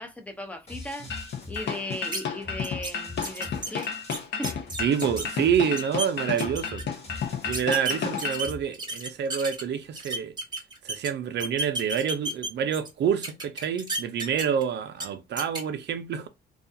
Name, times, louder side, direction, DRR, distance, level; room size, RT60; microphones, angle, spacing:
voice 1, 0.0-3.9 4.4-4.6, left 1 dB, 5° left, 0.6 m, -37 dB
sound 1, 0.7-8.7, left 3 dB, 35° left, 1.2 m, -43 dB
sound 2, 1.1-8.5, left 6 dB, 65° left, 0.7 m, -32 dB
sound 3, 2.1-2.2 2.6-2.9 3.2-5.3 5.6-6.1 6.4-6.8 7.5-9.6 9.9-11.1 11.4-12.9 13.2-14.6 15.0-15.1 15.4-15.6, right 2 dB, 20° right, 1.0 m, -32 dB
voice 2, 4.8-6.9 7.4-10.3 10.8-16.3, right 8 dB, 60° right, 0.5 m, -27 dB
2.3 x 2.3 x 2.6 m
cardioid pair, 90°, 20 cm